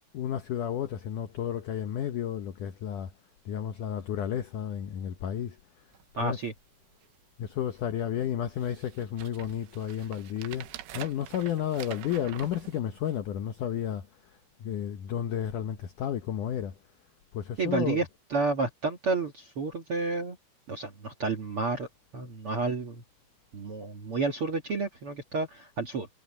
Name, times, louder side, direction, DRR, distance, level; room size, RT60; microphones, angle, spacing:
voice 1, 0.1-3.1 3.5-5.6 6.2-6.4 7.4-10.7 10.9-14.1 14.6-16.7 17.3-18.0, left 10 dB, 80° left, 1.8 m, -32 dB
sound 1, 5.9-6.1 6.6-6.7 6.9-7.4 8.0-8.1 8.6-13.4 14.0-14.1, right 14 dB, 75° right, 3.1 m, -46 dB
voice 2, 6.1-6.5 17.6-20.4 20.7-21.9 22.1-23.0 23.5-26.1, right 4 dB, 55° right, 1.6 m, -30 dB
omnidirectional pair, 5.2 m